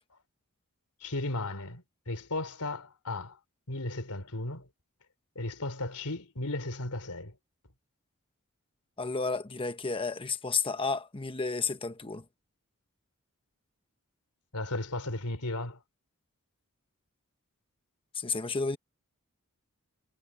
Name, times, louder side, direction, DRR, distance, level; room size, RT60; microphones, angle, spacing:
voice 1, 1.0-3.4 3.7-4.7 5.4-7.4 14.5-15.8, left 2 dB, 80° left, 3.5 m, -35 dB
voice 2, 9.0-12.2 18.1-18.8, left 4 dB, 25° left, 1.1 m, -32 dB
head